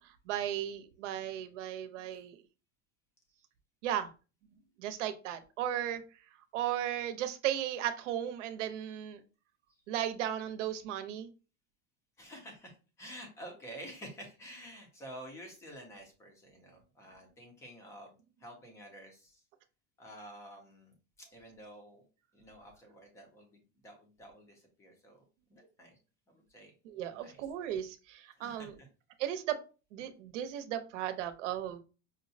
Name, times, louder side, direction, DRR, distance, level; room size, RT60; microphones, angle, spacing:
voice 1, 0.3-2.4 3.8-4.1 4.8-6.0 6.5-9.2 9.9-11.3 26.8-28.8 29.2-29.6 29.9-31.8, right 11 dB, 85° right, 9 dB, 0.7 m, -35 dB
voice 2, 12.2-18.1 18.4-19.4 20.0-20.9 21.3-22.0 22.3-25.2 25.5-25.9 26.3-26.7 27.1-27.4 28.4-28.9, equal, 10° left, 3 dB, 0.4 m, -50 dB
5.5 x 2.0 x 2.6 m, 0.33 s
supercardioid pair, 175°, 35 cm